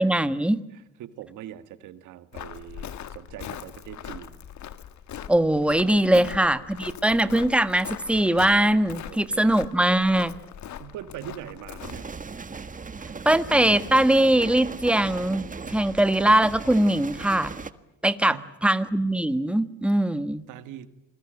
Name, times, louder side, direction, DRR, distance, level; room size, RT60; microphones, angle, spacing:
voice 1, 0.0-0.6 5.3-10.3 13.2-17.5 18.0-20.5, right 1 dB, 5° right, 12 dB, 1.5 m, -21 dB
voice 2, 0.7-4.4 6.1-6.5 9.1-9.5 10.8-12.1 18.2-18.5 20.5-20.9, right 12 dB, 90° right, 11 dB, 1.8 m, -42 dB
Walk footsteps, 2.3-12.1, left 9 dB, 70° left, 1.8 m, -40 dB
sound 1, 11.8-17.7, right 4 dB, 25° right, 1.6 m, -37 dB
27.0 x 22.0 x 9.0 m, 0.88 s
cardioid pair, 90°, 30 cm